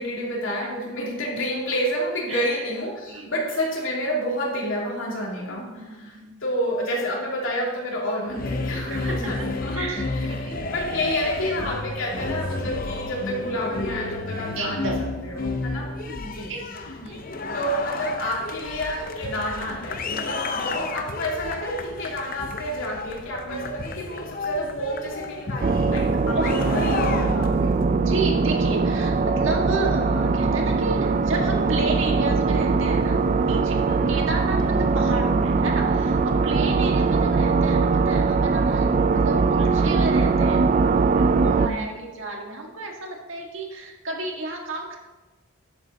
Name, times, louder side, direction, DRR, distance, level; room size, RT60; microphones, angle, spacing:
voice 1, 0.0-14.9 15.2-15.9 16.2-16.5 17.5-27.7 33.8-34.2 34.6-34.8 36.5-36.8 41.5-41.8, equal, 65° left, -3 dB, 2.8 m, -29 dB
voice 2, 2.3-2.7 3.1-3.3 5.5-6.4 8.7-9.5 9.7-10.7 14.6-15.0 15.7-16.6 17.0-17.2 17.5-17.6 20.6-20.7 23.4-23.6 26.0-26.8 27.9-33.8 34.1-40.6 41.1-45.0, right 2 dB, 65° right, 0 dB, 1.7 m, -32 dB
sound 1, 8.3-27.8, left 3 dB, 40° left, 0.7 m, -31 dB
sound 2, 25.6-41.7, right 4 dB, 35° right, 0.3 m, -21 dB
10.5 x 8.0 x 4.0 m, 1.2 s
head